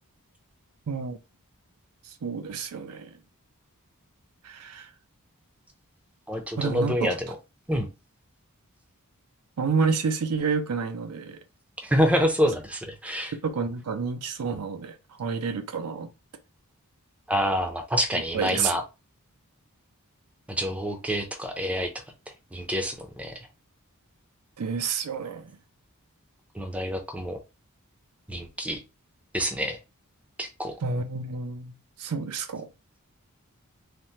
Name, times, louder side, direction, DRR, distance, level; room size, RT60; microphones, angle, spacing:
voice 1, 0.9-1.2 2.1-3.2 4.4-4.9 6.6-7.2 9.6-11.4 13.4-16.1 18.1-18.8 24.6-25.5 30.8-32.7, right 5 dB, 85° right, 0.5 m, -29 dB
voice 2, 6.3-7.2 7.7-7.9 11.8-13.3 17.3-18.8 20.5-21.9 22.5-23.3 26.5-27.4 28.3-28.8 29.3-29.8 30.4-30.7, equal, 5° right, 0.5 m, -27 dB
3.3 x 2.1 x 2.8 m
head